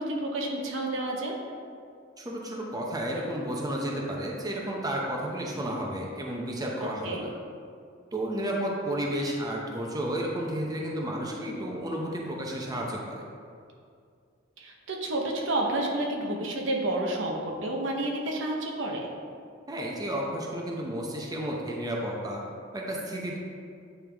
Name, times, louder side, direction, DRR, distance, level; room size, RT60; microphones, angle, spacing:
voice 1, 0.0-1.3 6.8-7.2 14.6-19.1, right 1 dB, 85° right, 0 dB, 0.9 m, -30 dB
voice 2, 2.2-7.3 8.1-13.3 19.7-22.4 22.7-23.4, right 1 dB, 20° right, -2 dB, 0.7 m, -32 dB
8.9 x 3.4 x 3.4 m, 2.3 s
head